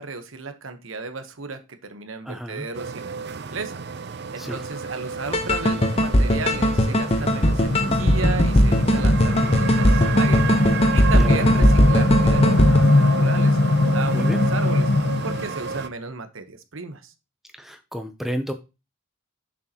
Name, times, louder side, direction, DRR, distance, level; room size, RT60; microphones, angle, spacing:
voice 1, 0.0-10.4 10.9-14.9 15.2-17.1, right 4 dB, 75° right, 8 dB, 1.1 m, -34 dB
voice 2, 2.2-2.6 4.4-4.6 7.8-8.0 11.1-11.5 14.1-14.4 17.6-18.5, equal, ahead, 7 dB, 0.6 m, -31 dB
sound 1, 2.7-15.9, right 5 dB, 50° right, 0.5 m, -32 dB
sound 2, 5.1-15.5, left 2 dB, 60° left, 0.8 m, -22 dB
sound 3, 5.3-12.8, equal, 30° left, 0.9 m, -19 dB
7.1 x 6.4 x 2.9 m, 0.27 s
head